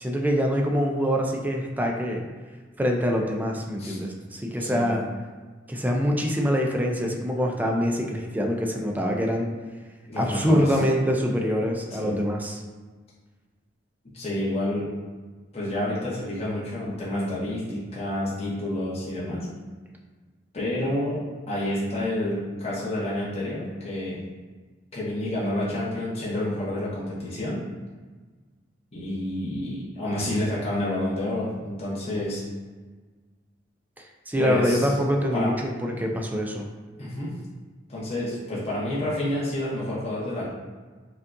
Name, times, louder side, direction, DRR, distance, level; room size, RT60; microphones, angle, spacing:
voice 1, 0.0-2.2 2.8-5.0 5.7-9.5 10.2-12.6 34.0-36.7, equal, 10° right, 1 dB, 0.4 m, -25 dB
voice 2, 4.6-4.9 10.1-10.6 12.0-12.1 14.1-14.9 15.5-19.5 20.5-24.2 24.9-27.6 28.9-32.4 34.4-34.9 35.3-35.6 37.0-37.3 37.9-40.5, left 1 dB, 35° left, -8 dB, 1.0 m, -29 dB
5.3 x 2.4 x 2.6 m, 1.4 s
head